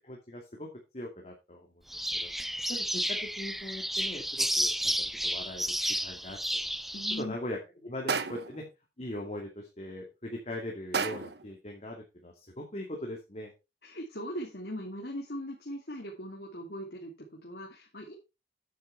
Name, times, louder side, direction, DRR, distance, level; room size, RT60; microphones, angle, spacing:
voice 1, 0.0-1.7 2.1-2.3 2.7-5.7 6.0-6.4 7.2-8.7 9.0-13.5, left 1 dB, 40° left, 0 dB, 2.3 m, -40 dB
sound 1, 1.9-7.2, equal, ahead, 0.4 m, -31 dB
voice 2, 6.9-7.4 13.8-18.1, equal, 65° left, -1 dB, 2.5 m, -40 dB
sound 2, 8.1-8.7 10.9-11.5, right 5 dB, 70° right, 0.9 m, -32 dB
9.3 x 7.9 x 4.5 m, 0.26 s
head